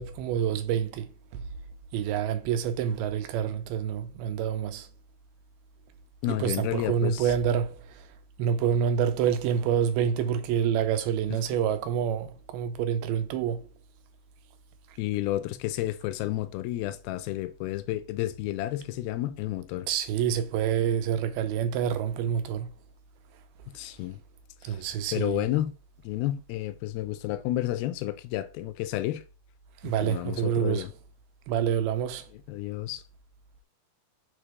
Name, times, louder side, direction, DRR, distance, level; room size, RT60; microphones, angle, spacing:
voice 1, 0.0-1.4 1.9-4.9 6.3-8.1 8.4-13.7 19.9-22.7 24.6-25.4 29.8-30.9 31.5-32.3, right 8 dB, 85° right, 2.5 m, -27 dB
voice 2, 6.2-7.3 15.0-19.9 23.7-24.2 24.6-24.8 25.1-25.7 26.0-29.2 29.8-30.9 32.5-33.0, left 15 dB, 80° left, 2.4 m, -31 dB
6.6 x 3.1 x 4.8 m
omnidirectional pair, 4.4 m